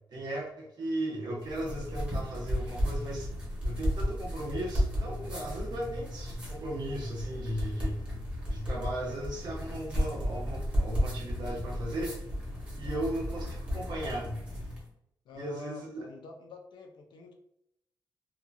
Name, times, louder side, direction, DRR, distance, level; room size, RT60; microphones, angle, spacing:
voice 1, 0.1-3.3 3.6-8.0 8.5-12.2 12.7-14.4 15.3-16.1, right 1 dB, 60° right, -3 dB, 1.0 m, -36 dB
sound 1, 1.4-14.9, equal, 15° right, 1.0 m, -34 dB
voice 2, 15.3-17.3, left 3 dB, 80° left, 3 dB, 0.5 m, -47 dB
2.9 x 2.5 x 2.2 m, 0.77 s
wide cardioid pair, 140°, 8 cm